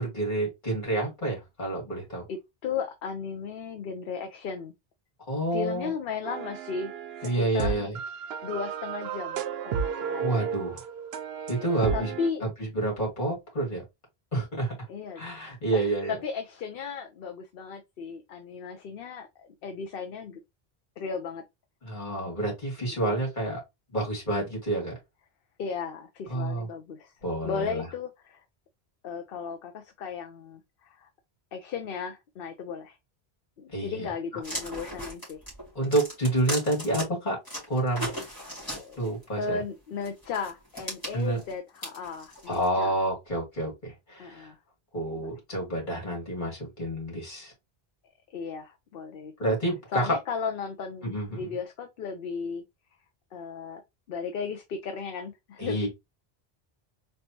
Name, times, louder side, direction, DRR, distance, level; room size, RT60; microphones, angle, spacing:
voice 1, 0.0-2.2 5.3-5.9 7.2-8.0 10.2-10.8 11.5-12.1 12.4-13.8 14.3-14.7 15.2-16.2 21.8-23.6 23.9-24.9 26.3-26.7 27.2-27.8 33.7-34.1 35.7-37.4 37.7-38.2 39.0-39.6 41.1-41.4 42.5-44.5 44.9-47.5 49.4-50.1 51.0-51.5 55.6-55.9, right 2 dB, 50° left, 2.7 m, -29 dB
voice 2, 2.3-4.7 5.5-7.9 8.4-10.4 11.6-12.5 14.9-20.4 21.0-21.4 22.8-23.2 25.6-27.1 27.4-28.4 29.0-31.1 31.5-33.0 33.6-35.4 38.7-39.1 39.4-43.0 44.2-44.6 45.1-45.3 48.3-49.5 49.9-52.6 53.3-53.8 54.1-55.9, left 5 dB, 70° left, 0.8 m, -36 dB
Lo-Fi melody, 6.2-12.3, right 7 dB, 80° right, 0.8 m, -33 dB
sound 1, 34.4-37.0 37.5-39.2 40.0-42.7, equal, 20° left, 2.3 m, -37 dB
4.0 x 3.3 x 2.8 m
omnidirectional pair, 1.0 m